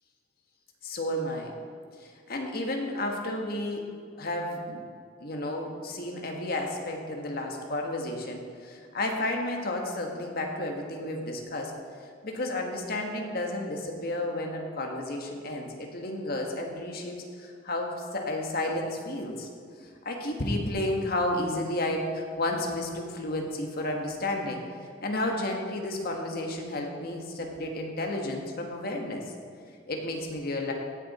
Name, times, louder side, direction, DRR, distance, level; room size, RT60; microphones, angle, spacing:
voice 1, 0.8-1.5 2.0-4.8 5.2-11.7 12.2-19.5 19.8-24.6 25.0-29.2 29.9-30.7, left 1 dB, 55° left, 2 dB, 1.5 m, -32 dB
16.0 x 6.7 x 4.2 m, 2.2 s
head